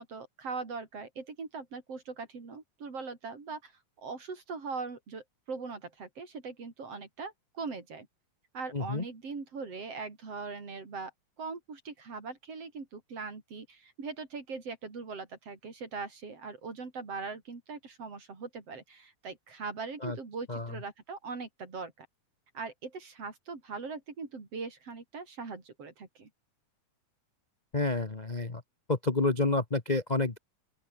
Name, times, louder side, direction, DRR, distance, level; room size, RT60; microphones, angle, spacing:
voice 1, 0.0-3.7 4.0-8.1 8.5-11.1 11.4-22.1 22.5-26.3, right 4 dB, 50° right, 5.3 m, -41 dB
voice 2, 8.7-9.0 20.0-20.2 20.5-20.7 27.7-28.6 28.9-30.4, left 3 dB, 25° left, 0.8 m, -29 dB
open air
omnidirectional pair, 3.4 m